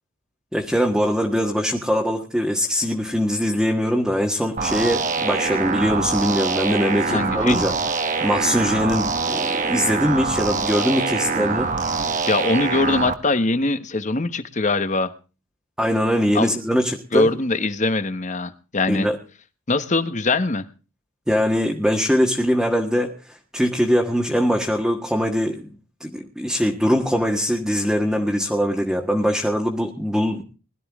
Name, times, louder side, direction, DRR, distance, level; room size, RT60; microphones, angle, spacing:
voice 1, 0.5-7.7 8.2-11.7 15.8-17.3 18.9-19.2 21.3-30.4, equal, ahead, -1 dB, 1.5 m, -22 dB
sound 1, 4.6-13.1, right 4 dB, 35° right, 1.2 m, -24 dB
voice 2, 7.1-7.6 12.3-15.1 16.3-16.6 17.1-19.1 19.7-20.7, left 2 dB, 35° left, 11 dB, 1.1 m, -22 dB
21.0 x 12.5 x 3.6 m, 0.34 s
head